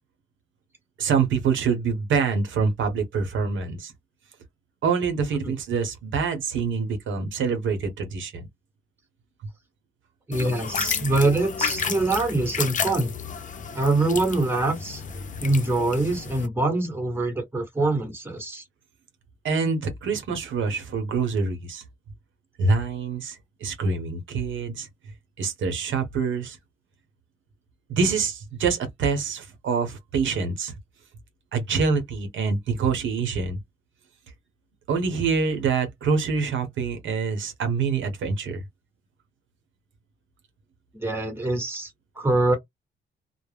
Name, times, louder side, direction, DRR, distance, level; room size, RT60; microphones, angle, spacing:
voice 1, 1.0-3.9 4.8-8.5 19.4-21.8 22.6-24.9 25.4-26.6 27.9-30.7 31.5-33.6 34.9-38.6, right 5 dB, 70° right, 0.8 m, -25 dB
sound 1, 10.3-16.5, left 6 dB, 40° left, 0.5 m, -31 dB
voice 2, 10.3-13.1 13.7-15.0 15.4-18.6 41.0-41.9 42.2-42.6, right 2 dB, 10° right, 1.2 m, -24 dB
2.3 x 2.0 x 3.3 m
cardioid pair, 100°, 20 cm